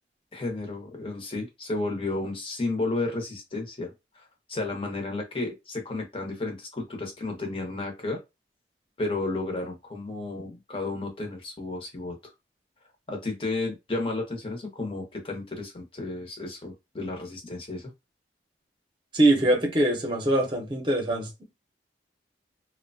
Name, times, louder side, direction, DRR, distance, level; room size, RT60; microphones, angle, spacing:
voice 1, 0.3-4.2 4.5-8.2 9.0-12.3 13.1-17.9, left 2 dB, 30° left, 0.8 m, -32 dB
voice 2, 19.1-21.4, right 1 dB, 25° right, 0.8 m, -23 dB
2.8 x 2.1 x 2.6 m
head